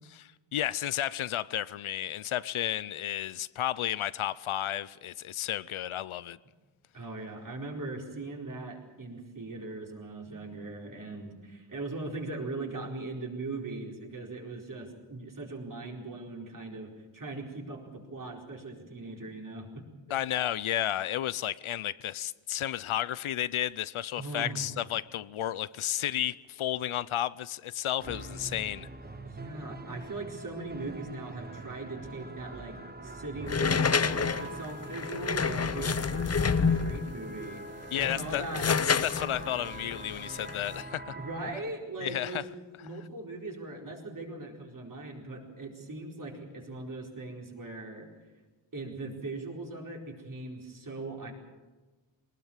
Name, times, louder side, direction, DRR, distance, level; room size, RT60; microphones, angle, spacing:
voice 1, 0.1-6.4 20.1-28.9 37.9-41.2 42.0-42.4, left 12 dB, 75° left, 0.7 m, -32 dB
voice 2, 6.9-19.8 24.2-24.7 29.2-32.8 33.0-38.7 41.1-42.4 42.8-48.1 48.7-51.3, right 2 dB, 40° right, 4.5 m, -40 dB
sound 1, 28.0-41.5, right 2 dB, 20° right, 1.3 m, -44 dB
sound 2, 33.5-37.1 37.8-40.8, left 5 dB, 30° left, 0.7 m, -28 dB
23.0 x 19.5 x 7.3 m
wide cardioid pair, 155°, 49 cm